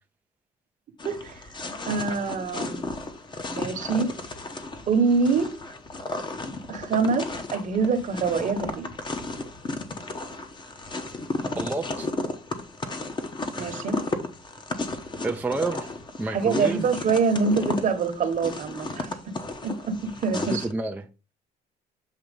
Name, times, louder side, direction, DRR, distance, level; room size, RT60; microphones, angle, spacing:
sound 1, 1.0-20.7, left 2 dB, 25° left, 1.0 m, -34 dB
voice 1, 1.0-1.4 1.9-2.9 3.5-4.1 4.9-5.5 6.7-8.9 13.6-14.1 16.3-19.4 19.6-20.7, right 5 dB, 50° right, 1.1 m, -25 dB
voice 2, 11.6-12.1 15.2-15.9 16.2-16.9 20.3-21.1, right 3 dB, 10° right, 0.5 m, -29 dB
7.4 x 2.8 x 5.1 m
cardioid pair, 110°, 17 cm